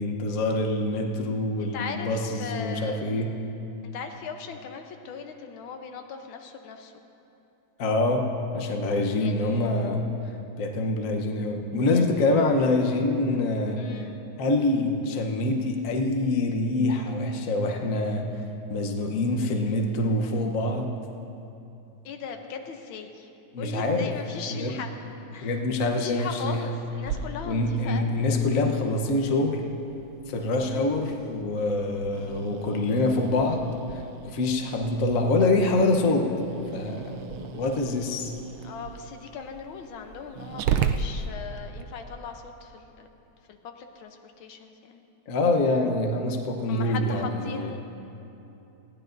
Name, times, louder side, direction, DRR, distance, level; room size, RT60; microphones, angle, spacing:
voice 1, 0.0-3.4 7.8-8.3 8.5-10.1 10.6-13.8 14.4-18.3 18.7-20.9 23.5-24.1 24.5-24.8 25.4-26.7 27.5-29.6 30.3-33.6 33.9-36.3 36.7-38.3 45.3-47.7, left 2 dB, 50° left, 2 dB, 1.2 m, -25 dB
voice 2, 1.6-3.2 3.8-6.9 9.2-9.9 11.7-12.7 13.8-14.2 22.1-23.3 23.6-24.9 25.3-25.6 26.0-28.2 30.6-30.9 38.6-43.1 43.5-45.0 46.7-47.8, left 6 dB, 85° left, 5 dB, 1.6 m, -39 dB
Growling, 27.1-41.8, right 7 dB, 85° right, 1.4 m, -36 dB
20.5 x 15.5 x 2.6 m, 2.9 s
omnidirectional pair, 2.2 m